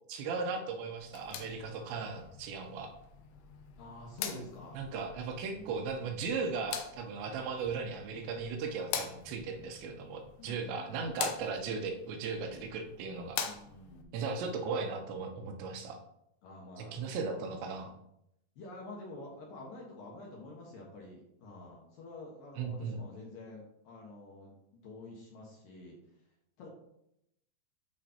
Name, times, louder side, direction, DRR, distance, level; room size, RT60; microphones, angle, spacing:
voice 1, 0.1-2.9 4.8-13.4 14.1-16.0 16.8-17.9 22.6-23.0, right 4 dB, 75° right, 4 dB, 2.9 m, -37 dB
sound 1, 1.0-14.0, left 8 dB, 85° left, 2.3 m, -44 dB
voice 2, 3.8-4.7 5.5-5.8 10.4-11.1 13.4-14.1 16.4-17.9 18.6-24.6 24.8-26.0 26.6-26.7, left 2 dB, 65° left, -2 dB, 2.4 m, -48 dB
12.0 x 5.0 x 2.9 m, 0.78 s
omnidirectional pair, 5.6 m